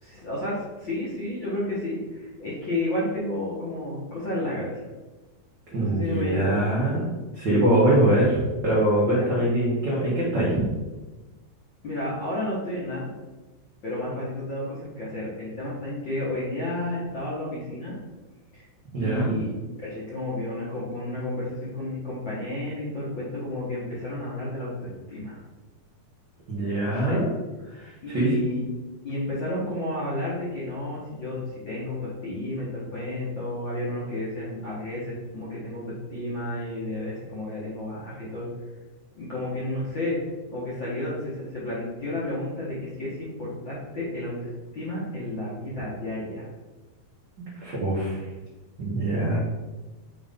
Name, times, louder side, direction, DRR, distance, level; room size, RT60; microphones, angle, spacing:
voice 1, 0.0-4.8 5.8-6.5 9.0-9.3 11.8-13.1 13.8-17.9 18.5-18.7 18.9-19.5 19.8-25.4 26.9-27.2 28.0-28.6 29.0-38.5 39.1-40.2 40.5-46.5, left 1 dB, 60° left, -8 dB, 1.2 m, -31 dB
voice 2, 5.7-7.1 7.3-10.6 18.9-19.3 26.5-27.3 27.8-28.3 47.5-48.2 48.8-49.4, right 1 dB, 90° right, -7 dB, 0.9 m, -23 dB
7.2 x 4.0 x 3.6 m, 1.2 s
omnidirectional pair, 4.2 m